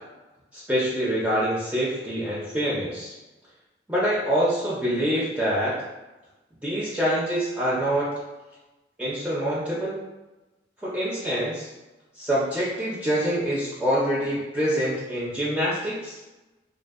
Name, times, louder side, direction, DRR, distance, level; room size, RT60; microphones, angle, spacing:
voice 1, 0.5-3.1 3.9-5.8 6.6-8.1 9.0-10.0 10.8-11.7 12.2-16.2, equal, 5° right, -7 dB, 0.4 m, -25 dB
2.5 x 2.3 x 2.4 m, 1.1 s
head